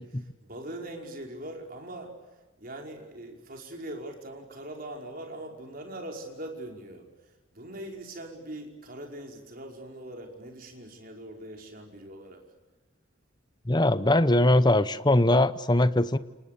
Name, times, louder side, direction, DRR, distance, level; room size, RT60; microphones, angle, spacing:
voice 1, 0.0-2.1 2.6-12.4, right 1 dB, 45° right, 2 dB, 5.4 m, -41 dB
voice 2, 13.7-16.2, left 1 dB, 20° left, 13 dB, 0.9 m, -21 dB
29.0 x 28.5 x 6.9 m, 1.2 s
head